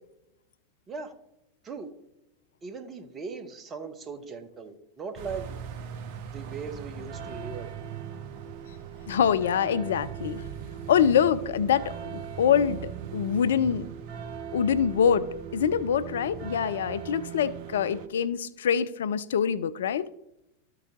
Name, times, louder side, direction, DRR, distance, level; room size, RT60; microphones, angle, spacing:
voice 1, 2.6-5.6 6.3-7.7, right 5 dB, 25° right, 1.0 m, -39 dB
sound 1, 5.2-18.1, right 7 dB, 50° right, 0.7 m, -39 dB
voice 2, 9.1-10.4 10.9-12.8 13.1-13.9 14.5-15.3 15.5-20.1, left 8 dB, 65° left, 0.3 m, -25 dB
13.0 x 4.7 x 3.7 m
figure-of-eight pair, 85°, 0 cm